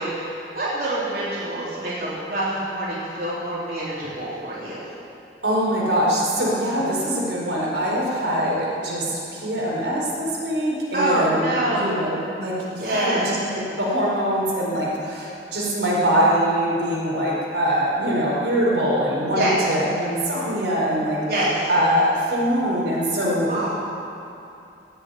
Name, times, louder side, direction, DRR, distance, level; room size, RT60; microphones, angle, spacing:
voice 1, 0.0-4.9 10.9-12.0 12.8-13.3 19.3-19.5 21.3-21.6 23.5-23.7, right 1 dB, 55° right, -9 dB, 3.5 m, -26 dB
voice 2, 5.4-11.4 11.7-21.2 21.7-23.7, equal, 90° right, -5 dB, 4.7 m, -23 dB
17.5 x 7.9 x 8.8 m, 2.7 s
head